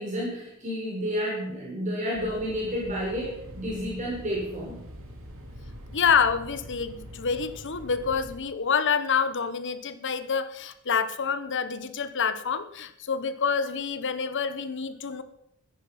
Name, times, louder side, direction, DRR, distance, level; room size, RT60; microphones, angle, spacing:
voice 1, 0.0-4.8, equal, 35° right, -4 dB, 4.7 m, -31 dB
sound 1, 2.1-8.4, equal, 65° right, 2.8 m, -44 dB
voice 2, 5.9-15.2, left 6 dB, 55° left, 12 dB, 1.0 m, -27 dB
14.0 x 10.5 x 5.8 m, 0.77 s
head